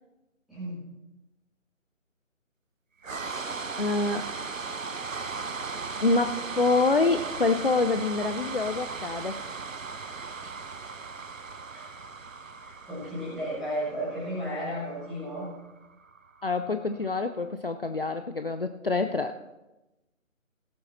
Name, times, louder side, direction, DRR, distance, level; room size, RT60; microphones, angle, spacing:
voice 1, 0.5-0.8 11.7-11.9 12.7-15.5, equal, ahead, -12 dB, 2.0 m, -33 dB
sound 1, 3.0-17.1, right 4 dB, 70° right, 0.9 m, -37 dB
voice 2, 3.8-4.3 6.0-9.4 10.4-10.5 16.4-19.4, left 3 dB, 45° left, 8 dB, 0.5 m, -26 dB
18.0 x 7.6 x 4.2 m, 1.0 s
figure-of-eight pair, 155°, 40 cm